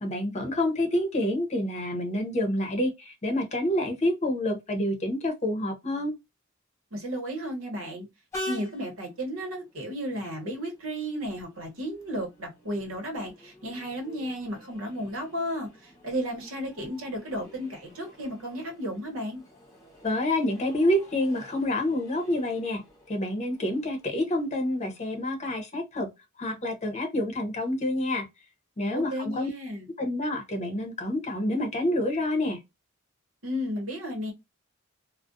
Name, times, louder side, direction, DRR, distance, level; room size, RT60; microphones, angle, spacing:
voice 1, 0.0-6.2 20.0-26.1 26.4-28.3 28.8-29.5 30.0-32.6, left 1 dB, 35° left, 0.7 m, -28 dB
voice 2, 6.9-8.0 8.5-19.4 28.9-29.9 33.4-34.3, equal, 75° right, 1.0 m, -33 dB
Train, 8.3-25.6, left 1 dB, 15° left, 1.1 m, -47 dB
2.3 x 2.1 x 2.5 m
head